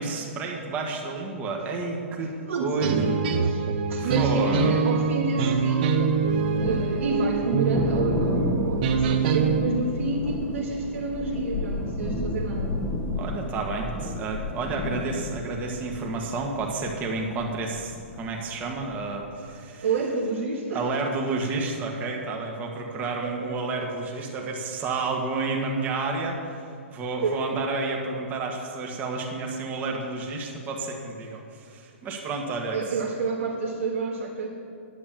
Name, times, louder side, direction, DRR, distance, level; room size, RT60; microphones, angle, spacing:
voice 1, 0.0-2.3 2.6-3.1 4.0-4.8 13.2-19.9 20.7-26.6 26.9-32.8, right 3 dB, 20° right, 1 dB, 1.6 m, -30 dB
voice 2, 2.5-3.6 3.9-6.2 6.6-12.8 19.8-20.9 23.2-23.8 27.2-27.5 32.7-34.5, right 3 dB, 70° right, -3 dB, 1.7 m, -29 dB
sound 1, 2.8-9.6, right 5 dB, 45° right, 1.1 m, -24 dB
Thunder, 6.1-19.3, left 1 dB, 10° left, 1.2 m, -32 dB
9.8 x 8.4 x 7.5 m, 2.5 s
hypercardioid pair, 140°, 7 cm